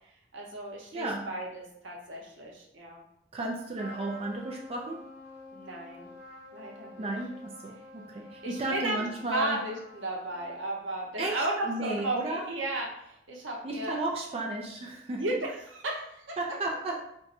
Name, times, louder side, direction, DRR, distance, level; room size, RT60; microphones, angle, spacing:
voice 1, 0.3-3.0 5.5-6.2 6.5-7.1 8.4-9.0 9.3-14.0 15.2-16.6, right 2 dB, 85° right, -1 dB, 0.8 m, -34 dB
voice 2, 0.9-1.3 3.3-5.0 7.0-9.6 11.2-12.5 13.6-15.2 16.4-17.1, right 2 dB, 30° right, 0 dB, 0.4 m, -33 dB
Trumpet, 3.7-10.7, left 2 dB, 10° right, 1.2 m, -49 dB
2.5 x 2.3 x 4.0 m, 0.73 s
head